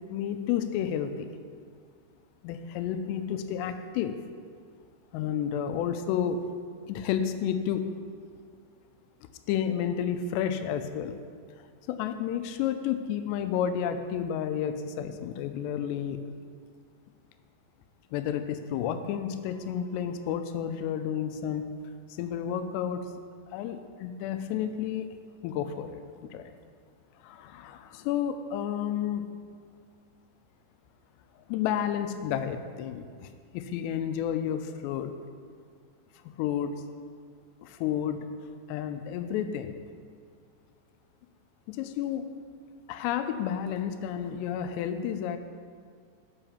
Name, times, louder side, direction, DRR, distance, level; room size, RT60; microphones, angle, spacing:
voice 1, 0.1-1.3 2.4-4.2 5.1-6.4 6.9-8.0 9.5-11.2 11.9-16.2 18.1-21.7 22.1-23.0 23.5-25.1 25.4-26.5 27.2-29.2 31.5-35.1 36.4-36.7 37.6-38.2 38.7-39.8 41.7-42.3 42.9-45.4, left 9 dB, 85° left, 9 dB, 2.5 m, -31 dB
7.0 x 5.7 x 7.1 m, 2.1 s
omnidirectional pair, 5.2 m